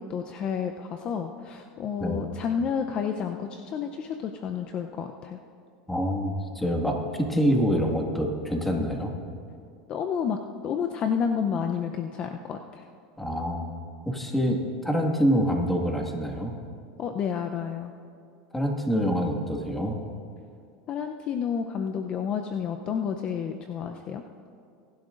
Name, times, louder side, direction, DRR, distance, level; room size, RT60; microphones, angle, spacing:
voice 1, 0.0-5.4 9.9-12.8 17.0-17.9 20.9-24.2, left 7 dB, 40° left, 5 dB, 0.6 m, -30 dB
voice 2, 5.9-9.1 13.2-13.7 14.1-16.5 18.5-20.0, equal, 10° left, 1 dB, 1.8 m, -26 dB
22.5 x 11.5 x 2.6 m, 2.4 s
hypercardioid pair, 100°, 3 cm